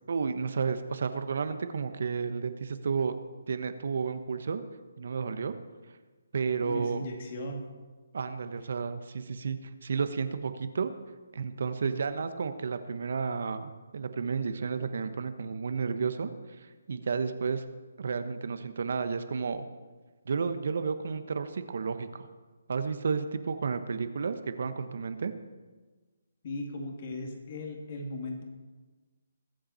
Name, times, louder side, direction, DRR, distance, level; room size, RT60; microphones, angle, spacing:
voice 1, 0.1-3.1 3.5-4.6 5.0-5.5 6.3-7.0 8.1-10.9 11.3-16.3 16.6-17.6 18.0-19.7 20.2-22.3 22.7-25.3, right 5 dB, 60° right, 10 dB, 1.1 m, -32 dB
voice 2, 6.6-7.6 26.4-28.4, left 2 dB, 45° left, 2 dB, 2.6 m, -37 dB
21.0 x 7.7 x 4.3 m, 1.3 s
figure-of-eight pair, 145°, 0 cm